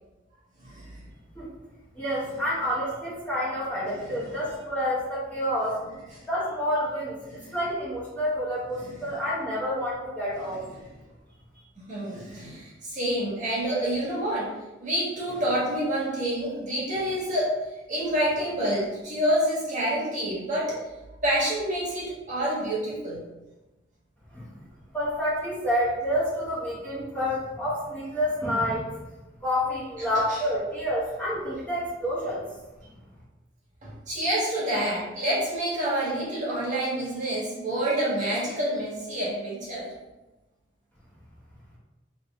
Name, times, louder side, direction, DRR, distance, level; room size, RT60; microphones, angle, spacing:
voice 1, 0.6-1.0 4.1-4.2 7.3-7.6 10.8-10.9 11.8-14.5 14.8-17.6 17.9-20.8 21.2-23.2 30.0-30.4 33.8-39.9, right 1 dB, 40° right, -6 dB, 1.3 m, -28 dB
voice 2, 1.9-5.8 6.3-7.2 7.5-10.6 24.3-24.5 24.9-28.9 29.4-32.4 32.8-32.9, equal, 10° left, -9 dB, 1.0 m, -28 dB
3.2 x 3.1 x 3.5 m, 1.1 s
head